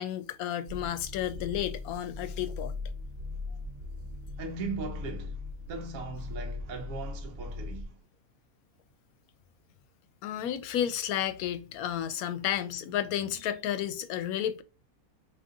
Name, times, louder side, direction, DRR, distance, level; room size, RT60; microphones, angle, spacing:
voice 1, 0.0-2.7 10.2-14.6, left 10 dB, 80° left, 1.0 m, -32 dB
sound 1, 0.7-7.8, left 3 dB, 50° right, 0.5 m, -39 dB
voice 2, 4.4-8.0 12.7-12.9 13.3-13.4, right 4 dB, 70° right, 1.0 m, -39 dB
3.6 x 2.9 x 3.7 m
omnidirectional pair, 1.5 m